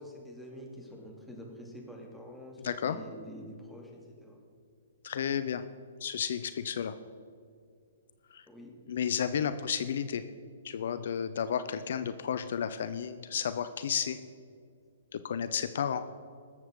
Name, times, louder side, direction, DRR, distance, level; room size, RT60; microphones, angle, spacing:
voice 1, 0.0-4.4 8.5-8.7, equal, ahead, -2 dB, 2.6 m, -47 dB
voice 2, 2.6-3.0 5.0-5.6 6.0-7.0 8.3-8.5 8.9-10.2 10.6-14.2 15.1-16.0, left 8 dB, 60° left, 12 dB, 0.6 m, -32 dB
20.0 x 7.9 x 3.8 m, 2.4 s
figure-of-eight pair, 120°, 0 cm